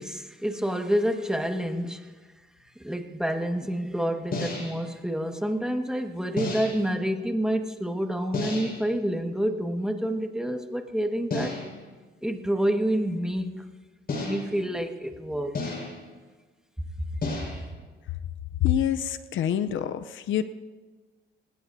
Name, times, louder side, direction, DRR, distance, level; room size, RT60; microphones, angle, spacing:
voice 1, 0.0-2.1 2.8-11.6 12.2-13.7 14.2-15.6, equal, 5° right, 3 dB, 1.7 m, -28 dB
sound 1, 4.3-4.9 6.4-6.9 8.3-8.9 11.3-11.9 14.1-14.7 15.5-16.1 17.2-17.8, left 3 dB, 50° left, 5.3 m, -32 dB
voice 2, 18.6-20.4, left 10 dB, 75° left, 11 dB, 0.8 m, -26 dB
26.5 x 19.5 x 2.8 m, 1.4 s
cardioid pair, 90°, 20 cm